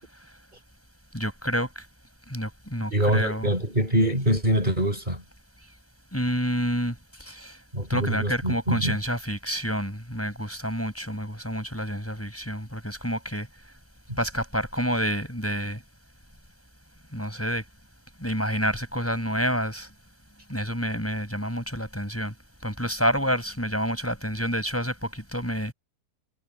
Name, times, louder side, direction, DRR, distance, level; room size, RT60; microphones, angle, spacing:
voice 1, 1.1-1.8 2.3-3.5 6.1-7.6 7.9-13.5 14.2-15.8 17.1-17.6 18.2-19.9 20.5-22.3 22.6-25.7, equal, 10° left, 5.9 m, -28 dB
voice 2, 2.9-5.2 7.7-9.0 14.1-14.2, equal, 30° right, 5.5 m, -24 dB
omnidirectional pair, 1.7 m